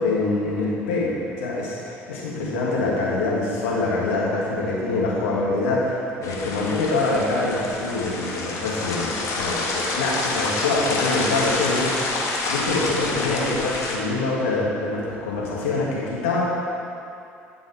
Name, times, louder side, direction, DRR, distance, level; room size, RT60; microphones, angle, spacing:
voice 1, 0.0-16.4, left 3 dB, 80° left, -5 dB, 2.0 m, -25 dB
sound 1, 6.2-14.0, left 3 dB, 55° left, 1.5 m, -27 dB
11.5 x 5.3 x 5.1 m, 2.5 s
hypercardioid pair, 60°, 6 cm